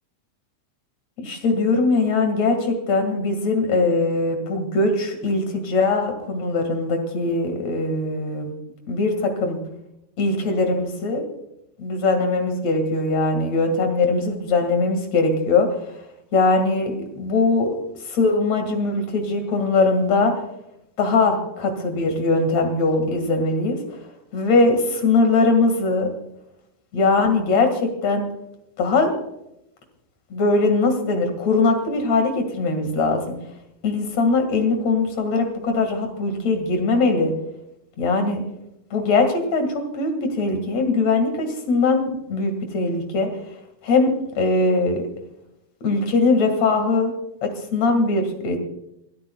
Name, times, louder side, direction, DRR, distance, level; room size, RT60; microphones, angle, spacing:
voice 1, 1.2-8.5 8.9-9.6 10.2-11.2 11.8-15.7 16.3-17.7 18.1-20.3 21.0-23.8 24.3-26.1 26.9-28.3 28.8-29.1 30.3-33.4 33.8-37.3 38.0-38.4 38.9-43.3 43.8-45.0 45.8-47.1 47.4-48.6, left 3 dB, 60° left, 5 dB, 3.3 m, -21 dB
27.0 x 13.0 x 2.4 m, 0.84 s
omnidirectional pair, 3.4 m